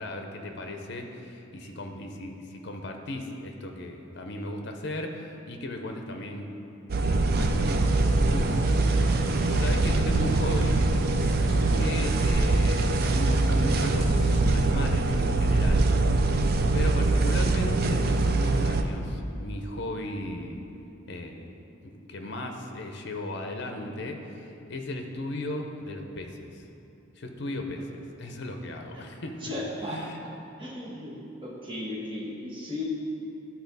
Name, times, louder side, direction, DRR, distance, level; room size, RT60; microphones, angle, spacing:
voice 1, 0.0-6.5 7.0-10.8 11.7-14.2 14.5-15.9 16.1-16.5 16.7-20.6 21.1-21.5 21.8-26.6 27.2-27.9 28.2-29.4 29.9-30.3, left 1 dB, 60° left, 4 dB, 0.7 m, -36 dB
sound 1, 6.9-18.8, right 2 dB, 50° right, 0.4 m, -23 dB
sound 2, 7.6-14.4, right 1 dB, 85° right, 1.1 m, -36 dB
voice 2, 29.4-30.3 30.6-31.1 31.4-32.8, left 1 dB, 25° right, -5 dB, 1.4 m, -36 dB
11.5 x 4.3 x 4.0 m, 2.8 s
head